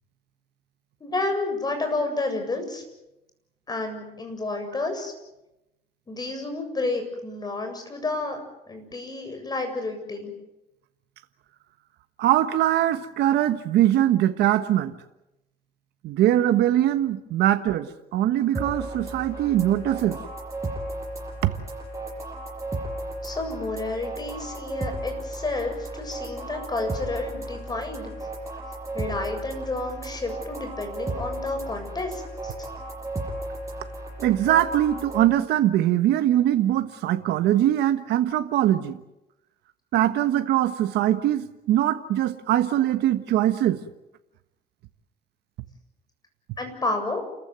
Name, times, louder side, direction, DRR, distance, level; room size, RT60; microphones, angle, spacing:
voice 1, 1.0-2.8 3.7-5.1 6.1-8.4 8.7-10.3 23.2-28.1 28.9-32.7 46.6-47.2, left 2 dB, 25° left, 7.5 m, -30 dB
voice 2, 12.2-14.9 16.0-20.2 21.4-21.5 34.2-39.0 39.9-43.8, right 12 dB, 80° right, 1.4 m, -22 dB
sound 1, 18.5-35.2, right 1 dB, 15° right, 7.3 m, -34 dB
29.5 x 14.5 x 9.4 m
cardioid pair, 110°, 17 cm